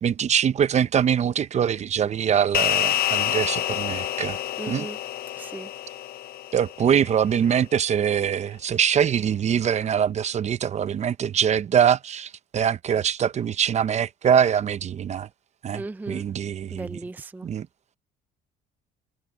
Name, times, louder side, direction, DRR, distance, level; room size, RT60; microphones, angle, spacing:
voice 1, 0.0-4.4 4.7-4.9 6.5-15.3 15.6-17.0 17.4-17.7, right 8 dB, 40° right, 0.8 m, -23 dB
sound 1, 2.5-7.2, left 12 dB, 65° left, 0.8 m, -27 dB
voice 2, 4.6-5.0 5.4-5.7 15.7-16.2 16.7-17.5, right 2 dB, 10° right, 0.5 m, -36 dB
cardioid pair, 110°, 17 cm